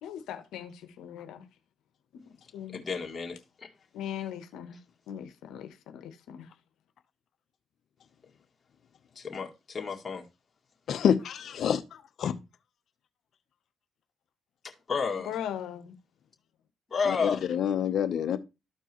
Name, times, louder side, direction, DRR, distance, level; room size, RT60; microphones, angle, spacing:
voice 1, 0.0-1.5 2.5-2.8 3.9-4.8 5.1-6.5 15.3-15.9, left 10 dB, 90° left, 1.0 m, -39 dB
voice 2, 2.7-3.7 9.2-10.2 14.9-15.3 16.9-17.4, left 5 dB, 35° left, 2.1 m, -31 dB
voice 3, 10.9-11.8 12.2-12.3 17.1-18.4, left 8 dB, 65° left, 0.8 m, -27 dB
13.0 x 4.5 x 3.0 m
cardioid pair, 90°, 0 cm